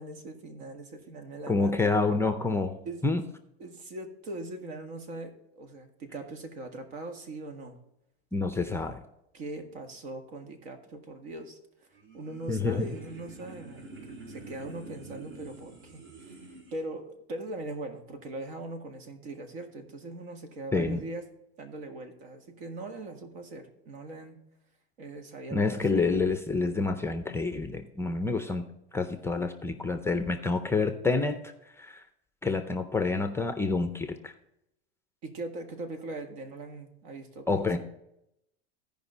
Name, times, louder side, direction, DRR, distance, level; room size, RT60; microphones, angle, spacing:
voice 1, 0.0-2.0 2.8-3.0 3.6-7.8 8.6-8.8 9.3-11.9 12.1-13.9 14.3-16.4 16.7-21.3 21.6-24.4 25.0-26.1 35.2-37.7, right 2 dB, 70° right, 6 dB, 1.8 m, -41 dB
voice 2, 1.5-2.8 3.0-3.2 8.3-9.0 12.5-12.9 20.7-21.0 25.5-28.6 28.9-31.5 31.8-32.0 32.4-34.3 37.5-37.8, left 3 dB, 10° left, 8 dB, 0.5 m, -28 dB
sound 1, 11.9-16.8, right 3 dB, 45° right, 2.3 m, -47 dB
15.5 x 5.2 x 4.0 m, 0.81 s
supercardioid pair, 120°, 32 cm